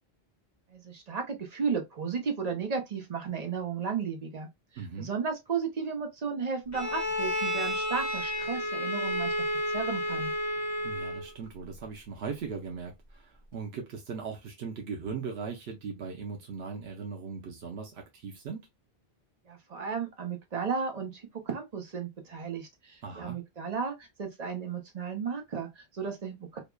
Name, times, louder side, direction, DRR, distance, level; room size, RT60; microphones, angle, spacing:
voice 1, 0.7-4.5 5.0-9.4 9.7-10.3 19.5-26.6, right 6 dB, 45° right, 0.8 m, -34 dB
voice 2, 4.8-5.1 10.8-18.7 23.0-23.4, right 5 dB, 80° right, 0.9 m, -39 dB
Bowed string instrument, 6.7-11.3, equal, 20° left, 0.5 m, -31 dB
3.1 x 2.1 x 2.2 m
omnidirectional pair, 1.1 m